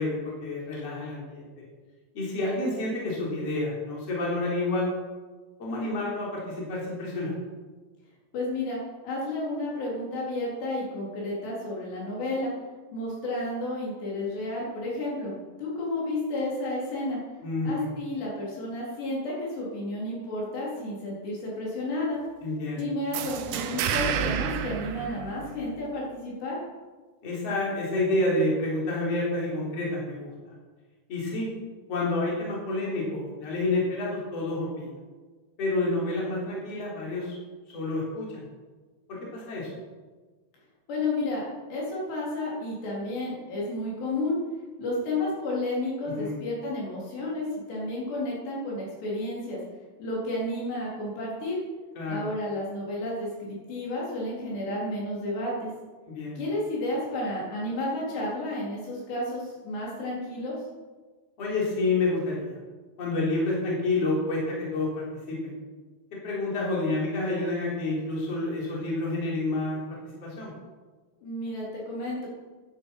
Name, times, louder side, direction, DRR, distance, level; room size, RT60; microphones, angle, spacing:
voice 1, 0.0-1.5 2.1-4.9 5.6-7.3 17.4-17.9 22.4-22.8 27.2-30.3 31.1-31.5 31.9-34.9 35.6-37.3 37.7-38.4 39.1-39.7 46.1-46.4 52.0-52.3 56.1-56.4 61.4-62.5 63.0-65.5 66.2-69.8 70.2-70.5, left 2 dB, 40° left, -4 dB, 4.6 m, -29 dB
voice 2, 8.3-12.5 12.9-15.3 15.6-17.2 17.6-22.2 22.8-26.6 40.9-44.4 44.8-49.6 50.0-51.6 52.1-55.7 56.4-60.6 71.2-72.3, left 1 dB, 80° left, -5 dB, 6.1 m, -31 dB
sound 1, 23.1-25.9, right 8 dB, 75° right, 2.0 m, -30 dB
14.5 x 10.0 x 5.7 m, 1.3 s
omnidirectional pair, 4.8 m